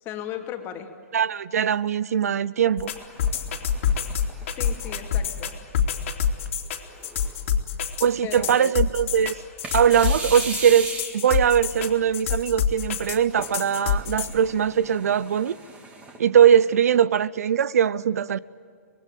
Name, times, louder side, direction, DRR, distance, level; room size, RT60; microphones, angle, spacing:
voice 1, 0.0-0.9 4.6-5.6 8.2-8.8, left 10 dB, 25° left, 2.6 m, -36 dB
voice 2, 1.1-2.9 8.0-9.4 9.7-15.6 16.2-18.4, right 8 dB, 75° right, 0.7 m, -21 dB
sound 1, 2.8-14.3, left 8 dB, 55° left, 3.1 m, -26 dB
sound 2, 3.0-5.5 6.1-6.2 6.9-7.5 9.6-11.4 13.3-16.2, right 3 dB, 15° right, 3.1 m, -38 dB
25.5 x 21.5 x 9.2 m
hypercardioid pair, 145°, 8 cm